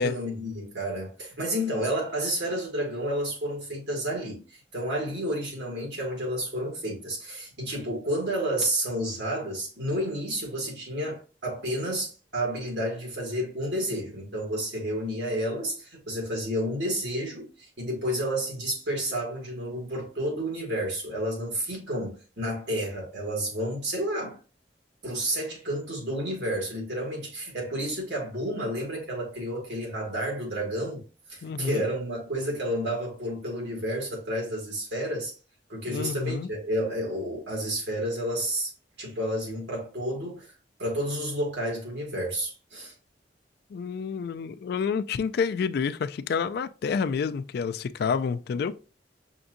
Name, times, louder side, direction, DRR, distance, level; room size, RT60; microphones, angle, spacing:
voice 1, 0.0-24.4 25.0-31.0 31.3-35.3 35.7-38.7 39.0-40.5 40.8-42.9, right 1 dB, 75° right, 1.9 m, -30 dB
voice 2, 31.4-31.8 35.9-36.5 43.7-48.8, left 5 dB, 60° left, 0.3 m, -29 dB
5.8 x 2.6 x 2.5 m
head